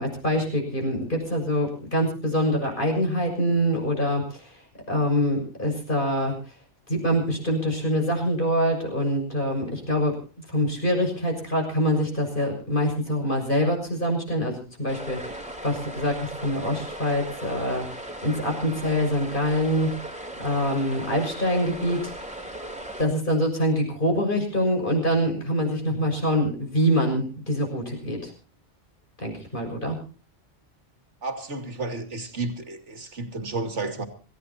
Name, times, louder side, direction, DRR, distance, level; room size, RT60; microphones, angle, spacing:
voice 1, 0.0-4.6 4.9-6.5 6.9-20.0 20.4-22.4 23.0-28.3 29.2-30.0, equal, 45° left, 1 dB, 6.7 m, -25 dB
sound 1, 14.9-23.1, right 1 dB, 5° right, 3.2 m, -37 dB
voice 2, 31.2-34.1, right 3 dB, 75° right, 7 dB, 2.7 m, -32 dB
26.5 x 16.0 x 2.8 m, 0.36 s
omnidirectional pair, 1.2 m